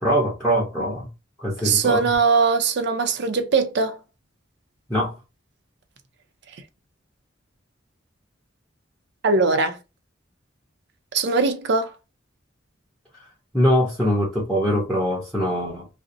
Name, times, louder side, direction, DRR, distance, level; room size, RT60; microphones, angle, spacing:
voice 1, 0.0-1.1 1.4-2.1 4.9-5.2 13.5-15.9, equal, 5° left, 0.8 m, -22 dB
voice 2, 1.6-4.0 9.2-9.8 11.1-11.9, right 4 dB, 60° right, 0.5 m, -20 dB
2.6 x 2.0 x 2.5 m
head